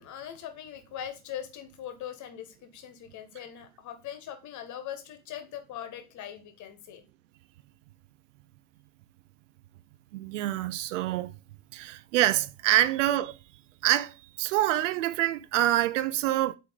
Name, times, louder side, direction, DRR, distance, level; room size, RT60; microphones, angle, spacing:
voice 1, 0.0-7.0, left 10 dB, 40° left, 1.5 m, -41 dB
voice 2, 10.1-11.3 11.7-13.4 13.8-16.6, right 14 dB, 60° right, 0.6 m, -26 dB
8.1 x 3.2 x 5.1 m
figure-of-eight pair, 65°, 43 cm